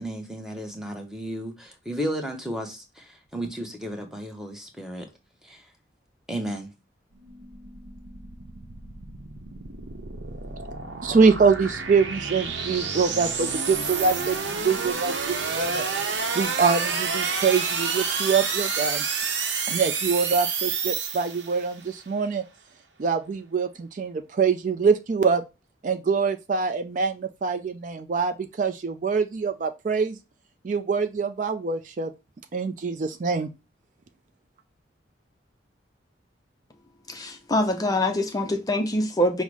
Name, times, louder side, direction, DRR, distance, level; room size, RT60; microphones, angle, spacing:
voice 1, 0.0-5.1 5.4-5.6 6.3-6.7, right 1 dB, 5° right, 0.8 m, -33 dB
sound 1, 7.1-21.7, right 5 dB, 80° right, 0.7 m, -29 dB
voice 2, 11.0-15.8 16.3-19.1 19.7-22.4 23.0-25.4 25.8-30.2 30.6-32.1 32.5-33.5, right 5 dB, 45° right, 0.3 m, -24 dB
voice 3, 37.1-39.4, left 1 dB, 20° left, 0.4 m, -24 dB
5.6 x 2.0 x 4.7 m
head